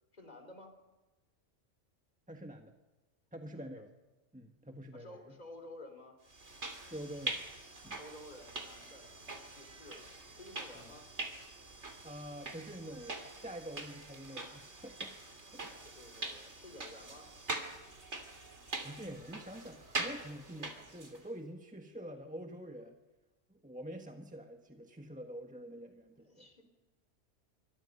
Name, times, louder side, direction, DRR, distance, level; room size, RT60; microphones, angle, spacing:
voice 1, 0.1-0.7 3.5-3.8 4.9-6.2 8.0-11.1 15.6-17.3 26.2-26.6, left 1 dB, 35° left, 5 dB, 4.0 m, -53 dB
voice 2, 2.3-2.7 3.3-3.9 4.3-5.2 6.8-7.4 7.8-8.0 10.8-10.9 12.0-15.1 15.5-15.7 18.8-23.0 23.5-26.5, equal, 5° right, 3 dB, 1.4 m, -46 dB
sound 1, 6.3-21.3, right 2 dB, 70° right, 3.2 m, -44 dB
26.5 x 24.5 x 5.5 m, 1.1 s
omnidirectional pair, 1.2 m